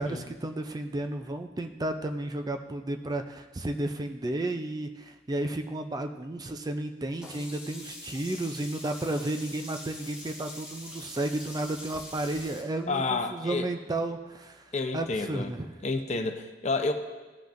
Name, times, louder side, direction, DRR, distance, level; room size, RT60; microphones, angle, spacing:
voice 1, 0.0-15.7, right 1 dB, 20° right, 6 dB, 0.4 m, -33 dB
Sink (filling or washing), 7.2-12.6, left 1 dB, 5° right, 1.7 m, -44 dB
voice 2, 12.9-13.7 14.7-15.5 15.8-16.9, left 3 dB, 40° left, 5 dB, 0.7 m, -30 dB
16.5 x 5.8 x 2.6 m, 1.2 s
head